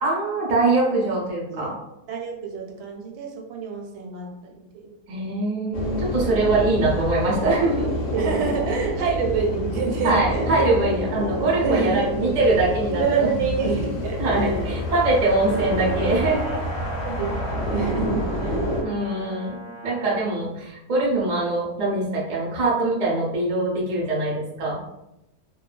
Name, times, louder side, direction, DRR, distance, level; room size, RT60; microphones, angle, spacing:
voice 1, 0.0-1.7 5.1-7.9 9.0-9.1 10.0-13.7 14.2-16.6 18.8-19.6 19.8-24.8, right 2 dB, 55° right, -4 dB, 0.4 m, -23 dB
voice 2, 2.1-4.9 8.1-10.6 11.6-12.2 13.0-14.7 17.0-18.7, right 5 dB, 80° right, 1 dB, 1.1 m, -27 dB
sound 1, 5.7-18.8, left 1 dB, 60° left, 0.8 m, -28 dB
Brass instrument, 14.9-20.1, equal, 85° left, 0.5 m, -40 dB
2.6 x 2.1 x 2.3 m, 0.88 s
omnidirectional pair, 1.8 m